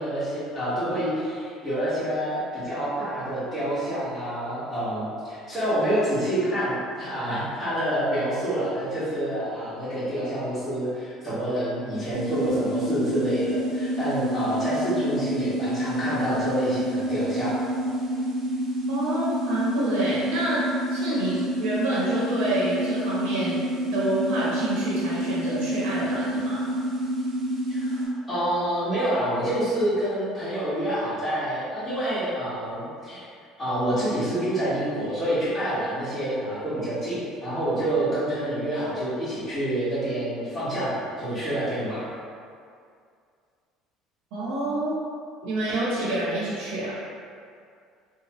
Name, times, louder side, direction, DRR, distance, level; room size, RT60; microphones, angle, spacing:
voice 1, 0.0-17.5 27.7-33.3 33.6-42.1, right 1 dB, 10° left, -14 dB, 1.4 m, -27 dB
sound 1, 12.1-28.0, equal, 45° right, 0.8 m, -28 dB
voice 2, 18.9-20.6 20.9-23.6 23.9-26.7 44.3-45.0 45.4-47.0, right 1 dB, 75° right, -8 dB, 0.9 m, -28 dB
3.0 x 2.2 x 2.9 m, 2.3 s
supercardioid pair, 105°, 0 cm